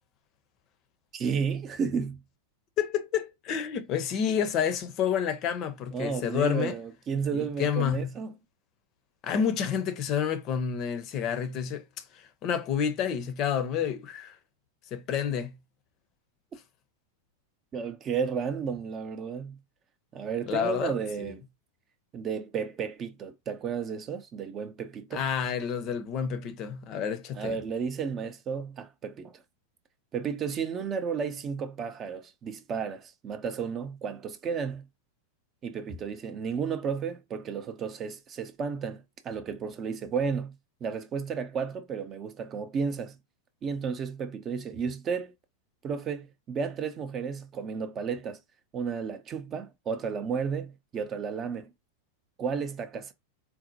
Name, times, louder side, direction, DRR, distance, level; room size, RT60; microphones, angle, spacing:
voice 1, 1.1-2.2 5.9-8.4 17.7-19.6 20.1-21.4 22.1-25.2 27.3-29.4 30.1-34.8 35.6-40.5 40.8-43.2 43.6-45.3 45.8-48.4 48.7-51.7 52.4-53.1, right 6 dB, 25° right, 0.5 m, -33 dB
voice 2, 2.8-6.8 7.3-8.1 9.2-11.8 12.4-14.3 14.9-15.5 20.5-20.9 21.2-21.3 25.1-27.6, left 8 dB, 35° left, 0.6 m, -29 dB
4.1 x 2.1 x 2.7 m
figure-of-eight pair, 90°, 0 cm